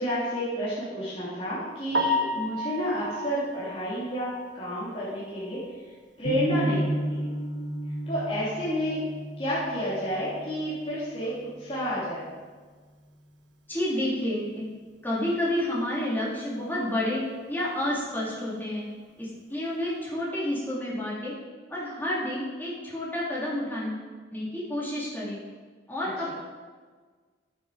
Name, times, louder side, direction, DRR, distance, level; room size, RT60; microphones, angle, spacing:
voice 1, 0.0-5.6 6.2-7.2 8.1-9.0 9.4-12.2 26.2-26.3, equal, 30° left, -10 dB, 3.1 m, -30 dB
Piano, 1.9-5.9 6.3-6.4 6.9-7.0 7.3-7.4 10.5-10.6 19.1-19.3, left 1 dB, 80° right, 1.3 m, -32 dB
sound 1, 6.2-12.3, right 1 dB, 45° right, 2.7 m, -34 dB
voice 2, 13.7-14.7 15.0-17.2 17.5-18.8 19.2-21.3 21.7-24.0 24.3-25.4 25.9-26.3, left 1 dB, 10° left, -7 dB, 2.9 m, -30 dB
10.0 x 9.1 x 4.9 m, 1.5 s
head